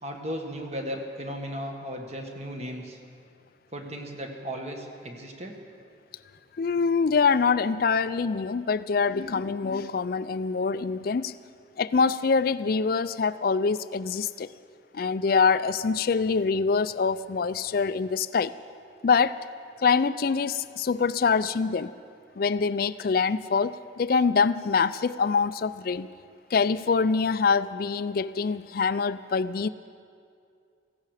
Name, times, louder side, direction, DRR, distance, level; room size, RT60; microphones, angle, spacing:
voice 1, 0.0-3.0 3.7-5.6, equal, 35° right, 3 dB, 1.5 m, -36 dB
voice 2, 6.6-11.3 11.8-14.5 14.9-18.5 19.0-19.4 19.8-21.9 22.4-26.1 26.5-29.7, left 5 dB, 50° left, 15 dB, 0.4 m, -25 dB
17.0 x 15.5 x 4.9 m, 2.4 s
head